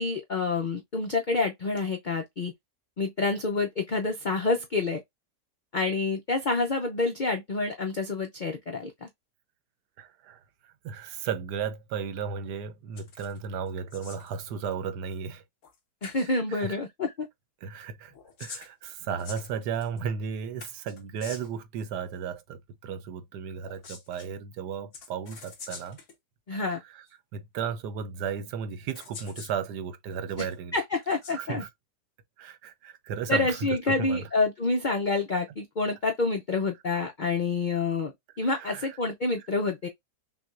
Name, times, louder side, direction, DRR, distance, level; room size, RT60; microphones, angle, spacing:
voice 1, 0.0-2.5 3.0-5.0 5.7-9.1 16.0-17.3 26.5-26.8 30.4-30.5 30.7-31.6 33.3-38.1 38.4-39.9, left 3 dB, 70° left, 0.4 m, -28 dB
voice 2, 10.0-15.4 16.3-16.8 17.6-18.1 18.4-26.0 26.7-27.0 27.3-30.7 31.3-31.7 32.4-34.3 38.4-38.9, right 7 dB, 80° right, 1.3 m, -35 dB
sound 1, 13.0-13.4 13.7-14.4 15.6-15.8 16.0-16.3 18.1-20.0 20.6-21.6 23.6-24.3 24.9-26.2 27.1-27.2 28.3-28.4 28.9-29.6 30.1-30.5 31.0-31.4, left 5 dB, 50° left, 1.3 m, -45 dB
5.9 x 2.3 x 2.5 m
omnidirectional pair, 1.8 m